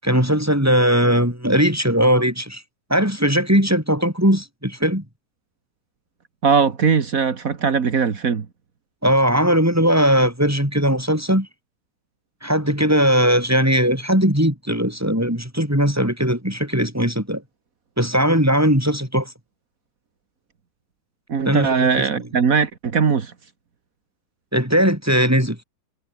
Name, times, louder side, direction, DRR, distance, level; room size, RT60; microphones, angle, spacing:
voice 1, 0.0-2.6 2.9-5.0 9.0-11.5 12.4-17.4 18.0-19.3 21.4-22.1 24.5-25.6, equal, 5° right, 7.5 m, -19 dB
voice 2, 6.4-8.4 21.3-23.3, right 6 dB, 55° right, 0.9 m, -20 dB
omnidirectional pair, 4.1 m